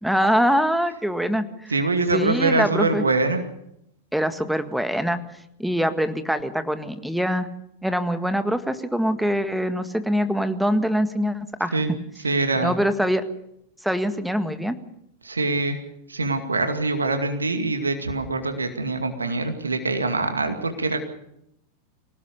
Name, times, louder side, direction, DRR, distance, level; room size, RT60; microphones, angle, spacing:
voice 1, 0.0-1.7 2.1-3.0 4.1-5.2 5.6-7.5 7.8-11.8 12.6-13.2 13.8-14.8, equal, ahead, 10 dB, 1.8 m, -23 dB
voice 2, 1.7-3.4 11.7-11.9 12.2-12.7 15.2-15.8 16.1-21.0, right 3 dB, 75° right, 6 dB, 2.3 m, -24 dB
26.0 x 17.5 x 6.9 m, 0.79 s
figure-of-eight pair, 90°, 0 cm